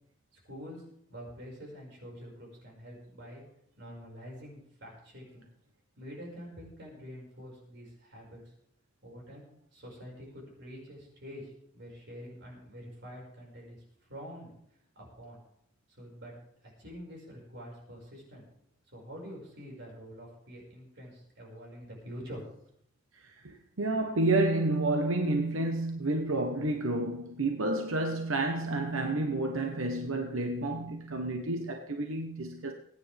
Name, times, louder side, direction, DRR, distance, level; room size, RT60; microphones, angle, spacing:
voice 1, 0.3-0.8 1.1-3.4 3.8-5.5 6.0-8.4 9.0-9.5 9.7-13.8 14.1-14.5 15.0-15.4 16.0-16.3 16.8-18.4 18.9-22.4, equal, 55° right, 5.6 m, -46 dB
voice 2, 23.4-32.7, right 2 dB, 80° right, 1.1 m, -30 dB
22.0 x 9.6 x 3.5 m
head